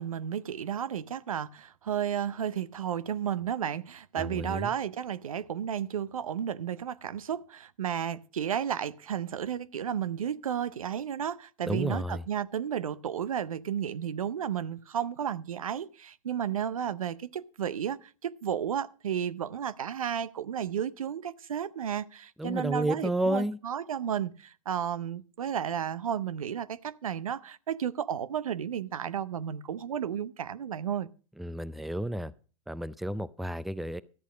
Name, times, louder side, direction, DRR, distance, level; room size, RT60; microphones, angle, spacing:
voice 1, 0.0-31.1, right 9 dB, 85° right, 0.6 m, -33 dB
voice 2, 4.2-4.7 11.7-12.2 22.4-23.6 31.4-32.3 32.7-34.0, right 1 dB, ahead, 0.5 m, -31 dB
13.0 x 8.3 x 5.0 m
hypercardioid pair, 105°, 17 cm